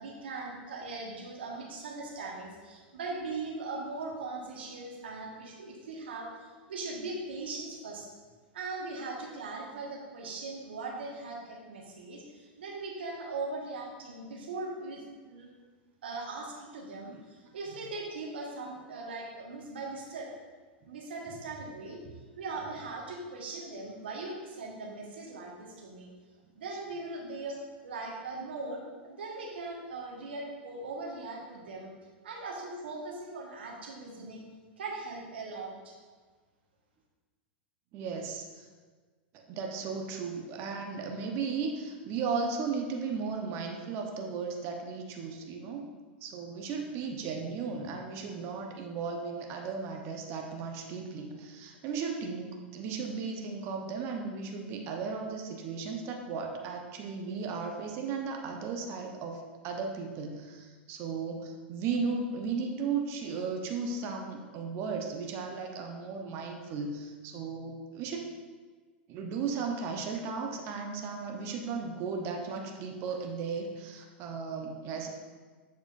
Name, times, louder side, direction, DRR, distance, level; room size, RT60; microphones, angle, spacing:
voice 1, 0.0-8.1 8.5-15.5 16.0-20.4 20.9-22.0 22.4-26.1 26.5-31.9 32.2-34.5 34.8-36.0, right 3 dB, 75° right, -1 dB, 1.4 m, -40 dB
voice 2, 37.9-38.7 39.3-45.8 46.2-68.3 69.1-75.1, right 5 dB, 45° right, 2 dB, 0.9 m, -35 dB
7.4 x 6.0 x 2.5 m, 1.4 s
hypercardioid pair, 100°, 6 cm